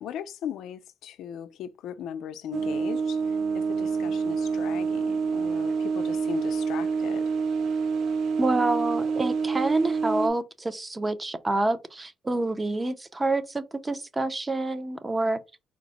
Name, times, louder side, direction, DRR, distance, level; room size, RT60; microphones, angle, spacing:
voice 1, 0.0-7.3, left 9 dB, 80° left, 0.5 m, -38 dB
sound 1, 2.5-10.3, right 5 dB, 70° right, 0.6 m, -27 dB
voice 2, 8.4-15.4, right 2 dB, 20° right, 0.6 m, -27 dB
4.4 x 2.0 x 4.0 m
cardioid pair, 90°, 0 cm